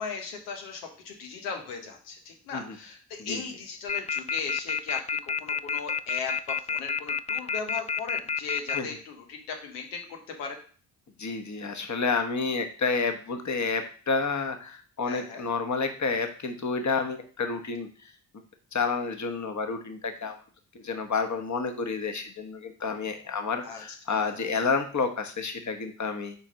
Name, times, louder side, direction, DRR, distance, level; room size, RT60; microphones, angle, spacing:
voice 1, 0.0-10.6 15.0-15.5 23.6-24.5, left 5 dB, 90° left, 3 dB, 1.2 m, -38 dB
sound 1, 3.9-8.8, left 6 dB, 20° left, 0.3 m, -28 dB
voice 2, 11.2-17.9 18.7-20.3 20.7-26.3, left 4 dB, 40° left, 6 dB, 1.3 m, -30 dB
4.4 x 4.4 x 5.2 m, 0.42 s
hypercardioid pair, 40°, 45 cm